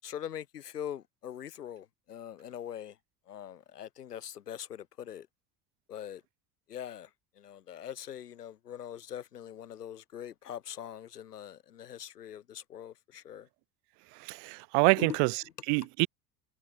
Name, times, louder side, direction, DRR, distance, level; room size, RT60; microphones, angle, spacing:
voice 1, 0.0-3.0 3.3-5.3 5.9-6.2 6.7-7.1 7.4-13.5 15.0-15.2, left 10 dB, 85° left, 7.9 m, -42 dB
voice 2, 14.1-16.1, right 39 dB, 65° right, 2.9 m, -27 dB
hypercardioid pair, 65°, 46 cm